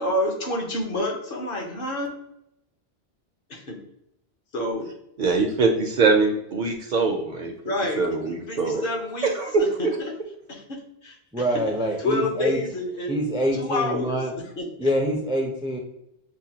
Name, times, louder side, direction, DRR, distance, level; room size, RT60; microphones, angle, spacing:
voice 1, 0.0-2.1 3.5-3.8 4.5-4.9 7.6-9.3 9.6-10.1 10.5-11.2 11.5-11.6 12.0-13.2 13.6-14.2 14.6-14.9, left 2 dB, 60° left, 2 dB, 1.0 m, -28 dB
voice 2, 5.2-7.5 8.0-8.8 9.4-9.7, right 4 dB, 55° right, 3 dB, 0.6 m, -22 dB
voice 3, 11.3-12.6 13.1-14.4 14.8-15.8, equal, 5° right, 2 dB, 0.4 m, -25 dB
6.1 x 2.2 x 2.8 m, 0.81 s
omnidirectional pair, 1.1 m